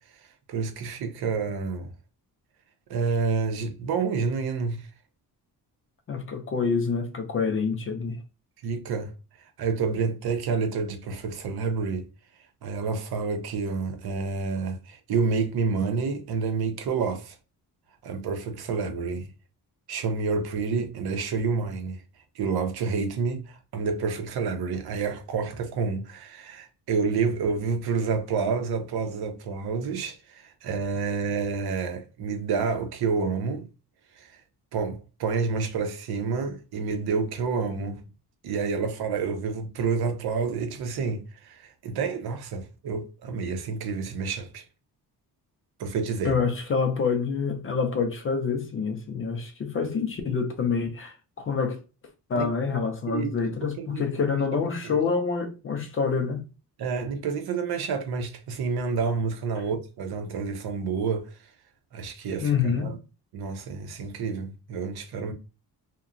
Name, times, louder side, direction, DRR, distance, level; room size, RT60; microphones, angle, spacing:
voice 1, 0.5-1.9 2.9-4.9 8.6-9.1 9.6-12.1 12.6-17.4 18.0-19.3 19.9-22.0 22.4-33.6 34.2-34.3 34.7-38.0 38.4-44.6 45.8-46.4 52.4-52.5 53.1-53.3 53.6-54.1 54.8-55.0 56.8-61.4 61.9-63.0 63.3-65.3, right 5 dB, 70° right, 0.7 m, -29 dB
voice 2, 6.1-8.2 46.2-51.8 52.3-56.4 62.4-62.9, left 5 dB, 35° left, 0.4 m, -27 dB
2.8 x 2.2 x 2.5 m
wide cardioid pair, 170°, 39 cm